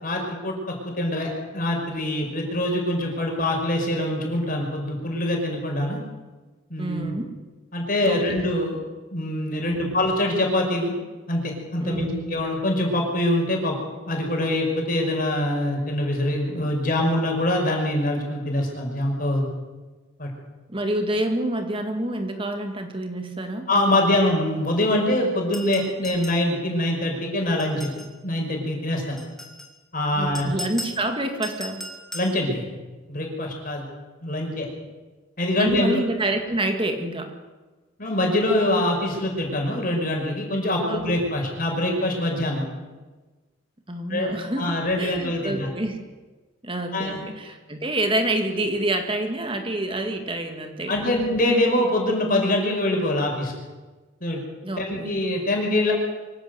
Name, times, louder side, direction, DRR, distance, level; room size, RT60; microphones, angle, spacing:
voice 1, 0.0-6.0 6.7-7.2 7.7-8.8 9.1-10.9 11.3-13.8 14.1-19.5 20.2-20.3 23.7-27.9 28.2-29.2 29.9-30.5 32.1-32.6 33.1-33.8 34.2-34.7 35.4-36.0 38.0-42.7 44.1-45.7 46.9-47.2 50.9-53.5 54.2-54.4 54.8-55.9, left 1 dB, 40° left, 1 dB, 5.7 m, -24 dB
voice 2, 6.8-7.3 8.0-8.2 9.6-9.9 11.8-12.3 20.7-23.7 30.1-31.8 35.6-37.4 40.9-41.2 43.9-46.0 46.6-51.1 54.6-55.1, right 1 dB, 25° right, 5 dB, 2.2 m, -28 dB
sound 1, 25.5-26.5 27.6-28.1 29.2-29.7 30.3-31.0 31.4-32.4, left 1 dB, ahead, 2.7 m, -37 dB
24.5 x 15.0 x 8.1 m, 1.3 s
head